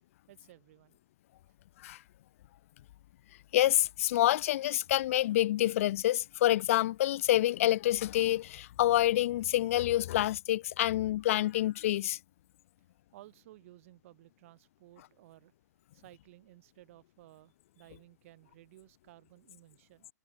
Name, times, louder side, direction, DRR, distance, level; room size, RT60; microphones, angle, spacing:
voice 1, 0.3-1.0 13.1-15.5 15.9-20.1, right 17 dB, 45° right, 5.0 m, -57 dB
voice 2, 3.5-12.2, left 14 dB, 50° left, 0.4 m, -27 dB
figure-of-eight pair, 115°, 10 cm